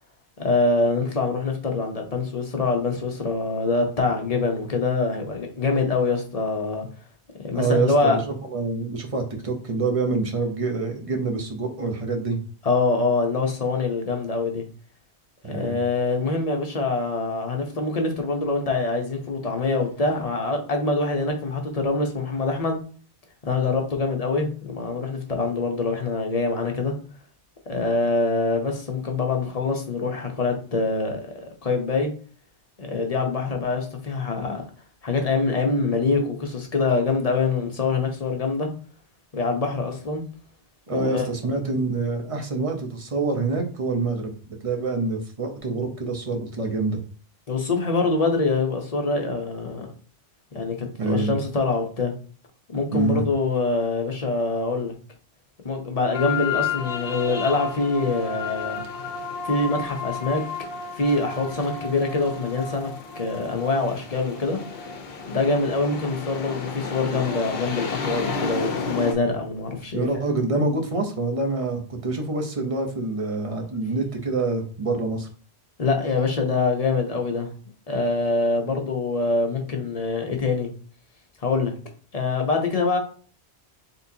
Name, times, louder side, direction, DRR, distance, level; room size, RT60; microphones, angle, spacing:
voice 1, 0.4-6.9 7.4-8.2 12.6-14.6 15.5-22.8 23.4-26.9 27.7-32.1 32.8-34.6 35.0-38.7 39.3-40.2 40.9-41.3 47.5-49.9 50.5-52.1 52.7-54.9 55.6-58.8 59.4-60.4 61.0-64.6 65.3-70.4 75.8-77.5 77.9-80.7 81.4-81.7 82.1-83.0, left 3 dB, 35° left, 0.9 m, -24 dB
voice 2, 7.5-8.2 8.5-12.4 15.4-15.8 40.9-44.3 44.6-47.0 51.0-51.3 52.9-53.2 69.9-75.3, right 3 dB, 35° right, 0.8 m, -26 dB
sound 1, 56.1-69.1, left 5 dB, 60° left, 0.9 m, -32 dB
4.2 x 3.7 x 2.8 m
omnidirectional pair, 1.2 m